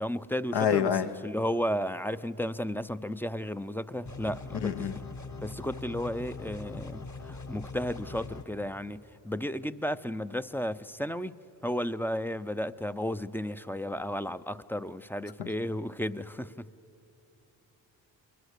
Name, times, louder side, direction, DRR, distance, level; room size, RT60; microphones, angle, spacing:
voice 1, 0.0-5.0 5.4-11.4 11.6-16.7, equal, 5° left, 0.6 m, -33 dB
voice 2, 0.5-1.1 4.6-4.9 15.4-15.5, left 8 dB, 60° left, 1.2 m, -26 dB
sound 1, 4.1-8.4, left 3 dB, 40° left, 1.6 m, -41 dB
29.0 x 21.5 x 6.7 m
supercardioid pair, 45°, 46 cm